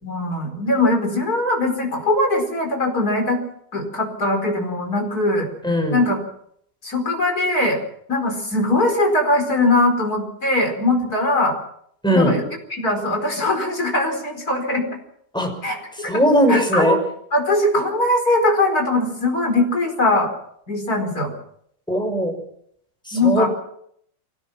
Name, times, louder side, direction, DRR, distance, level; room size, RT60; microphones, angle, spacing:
voice 1, 0.0-3.4 3.7-5.5 5.9-6.2 6.8-7.8 8.1-11.5 12.1-12.4 12.7-14.9 15.6-16.1 16.5-16.9 17.3-20.3 20.7-21.3 23.1-23.5, left 2 dB, 25° left, 3 dB, 5.0 m, -20 dB
voice 2, 5.6-6.0 12.0-12.3 15.3-15.5 16.1-17.0 21.9-22.3 23.1-23.5, equal, ahead, 2 dB, 5.5 m, -18 dB
24.5 x 18.5 x 5.9 m, 0.67 s
omnidirectional pair, 4.3 m